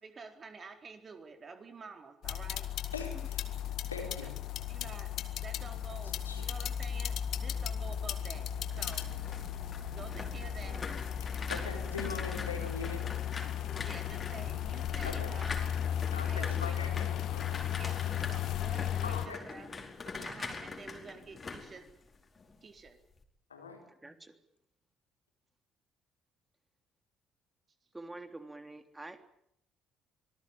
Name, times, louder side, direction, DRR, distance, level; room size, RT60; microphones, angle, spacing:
voice 1, 0.0-2.7 3.4-3.5 4.7-5.1 5.4-8.5 8.7-9.1 9.9-10.9 12.3-12.4 13.8-15.7 16.1-16.8 17.7-19.7 20.2-21.9 22.6-23.0, right 4 dB, 35° right, 5 dB, 4.4 m, -49 dB
sound 1, 2.2-19.3, left 10 dB, 55° left, 1.8 m, -35 dB
voice 2, 2.9-3.5 3.9-4.3 6.0-6.4 8.8-9.1 11.5-13.1 15.0-15.4 16.1-17.7 19.0-19.4 20.2-20.3 23.5-23.8, left 4 dB, 85° left, 3 dB, 4.6 m, -42 dB
sound 2, 8.6-22.5 22.9-23.2, left 4 dB, 30° left, 4.8 m, -44 dB
voice 3, 23.9-24.3 27.9-29.2, right 2 dB, 15° right, 7 dB, 3.3 m, -47 dB
25.5 x 19.5 x 9.0 m, 0.74 s
figure-of-eight pair, 50°, 0 cm